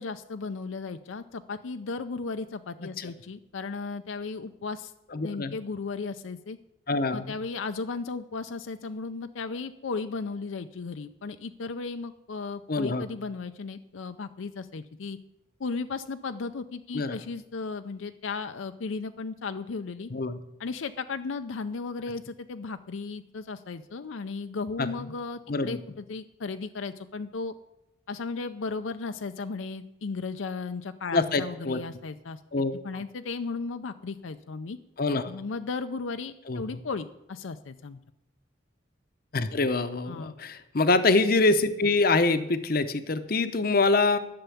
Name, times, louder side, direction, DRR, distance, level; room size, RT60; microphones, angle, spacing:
voice 1, 0.0-4.9 5.2-6.6 7.1-15.2 15.6-20.1 20.6-27.5 28.1-32.4 32.8-34.8 35.3-38.0 40.1-40.4, left 4 dB, 80° left, 9 dB, 0.5 m, -35 dB
voice 2, 2.8-3.1 5.1-5.6 6.9-7.3 12.7-13.0 16.9-17.2 20.1-20.4 24.8-24.9 25.5-25.8 31.1-31.8 32.5-33.0 35.0-35.3 36.5-36.6 39.3-44.2, left 3 dB, 50° left, 10 dB, 0.7 m, -25 dB
11.5 x 6.8 x 8.4 m, 0.86 s
head